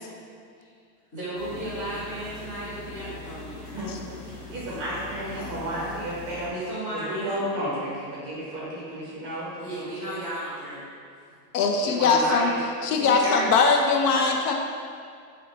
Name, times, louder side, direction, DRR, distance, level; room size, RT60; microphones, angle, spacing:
voice 1, 1.1-3.9 6.4-7.4 9.6-10.8, right 1 dB, 20° left, -15 dB, 0.3 m, -35 dB
sound 1, 1.3-6.5, left 3 dB, 40° left, 1.3 m, -41 dB
voice 2, 4.5-6.7 7.0-9.5 9.8-10.2 11.8-12.6 13.0-13.5 14.1-14.2, right 1 dB, 25° right, -7 dB, 1.0 m, -32 dB
voice 3, 11.5-12.5 12.8-14.5, left 4 dB, 70° left, 2 dB, 0.6 m, -21 dB
3.9 x 3.2 x 2.9 m, 2.3 s
supercardioid pair, 175°, 49 cm